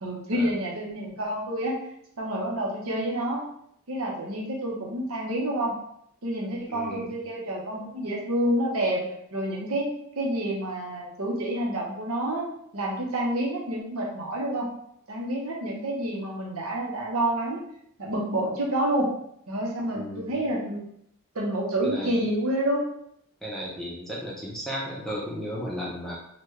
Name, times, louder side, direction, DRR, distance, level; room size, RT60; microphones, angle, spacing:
voice 1, 0.0-1.8 2.2-3.4 3.9-5.7 6.2-9.1 9.3-9.9 10.2-12.5 12.7-14.7 15.1-17.6 18.0-19.1 19.5-20.8 21.3-22.8, right 1 dB, 70° right, -2 dB, 0.9 m, -28 dB
voice 2, 6.7-7.1 19.9-20.4 21.8-22.2 23.4-26.2, equal, ahead, -5 dB, 0.7 m, -35 dB
3.9 x 2.2 x 3.1 m, 0.71 s
head